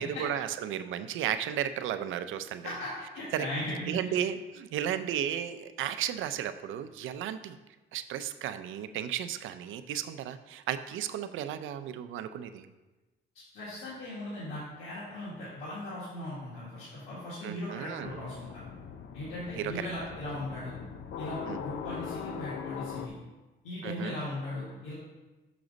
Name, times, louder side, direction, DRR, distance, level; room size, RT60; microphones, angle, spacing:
voice 1, 0.0-2.7 3.3-3.5 3.9-7.6 7.9-12.7 17.4-18.2 19.6-19.9 21.4-21.6 23.8-24.2, right 10 dB, 80° right, 11 dB, 0.5 m, -34 dB
voice 2, 2.6-4.2 13.5-18.6 19.1-20.7 21.2-23.1 23.6-24.9, left 1 dB, 90° left, -8 dB, 1.7 m, -38 dB
sound 1, 18.0-23.1, left 7 dB, 70° left, 0.6 m, -41 dB
6.2 x 6.0 x 3.9 m, 1.1 s
cardioid pair, 90°, 20 cm